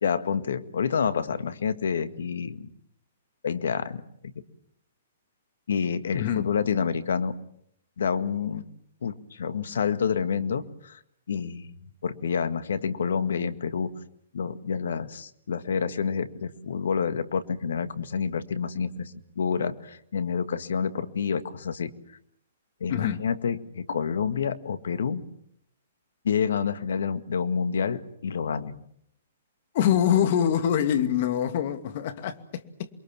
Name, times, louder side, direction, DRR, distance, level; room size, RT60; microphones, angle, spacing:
voice 1, 0.0-2.7 3.4-4.3 5.7-7.3 8.0-8.6 9.0-11.0 11.3-11.7 12.0-13.9 14.3-21.9 22.8-25.3 26.2-28.8, left 6 dB, 75° left, 1.9 m, -28 dB
voice 2, 6.1-6.5 22.9-23.2 29.7-32.9, left 9 dB, 50° left, 2.5 m, -25 dB
28.5 x 23.0 x 7.5 m
hypercardioid pair, 130°, 0 cm